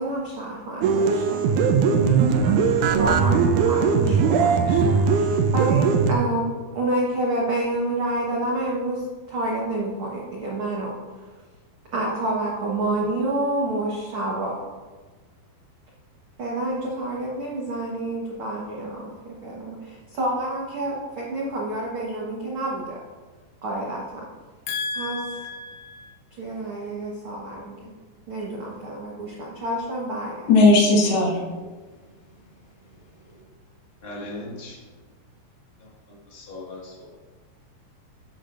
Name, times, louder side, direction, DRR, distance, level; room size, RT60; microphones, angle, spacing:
voice 1, 0.0-1.7 2.0-2.5 3.0-10.9 11.9-14.6 16.4-23.0 23.6-24.2 24.9-25.2 26.4-27.9 28.3-30.5, right 2 dB, 70° right, -4 dB, 1.2 m, -28 dB
sound 1, 0.8-6.1, right 6 dB, 85° right, 1.7 m, -19 dB
voice 2, 24.7-26.1 30.5-31.4, left 2 dB, 85° left, -2 dB, 3.3 m, -20 dB
voice 3, 34.0-34.8 35.8-37.1, left 2 dB, 55° left, -4 dB, 0.6 m, -39 dB
13.0 x 8.6 x 2.6 m, 1.4 s
omnidirectional pair, 4.4 m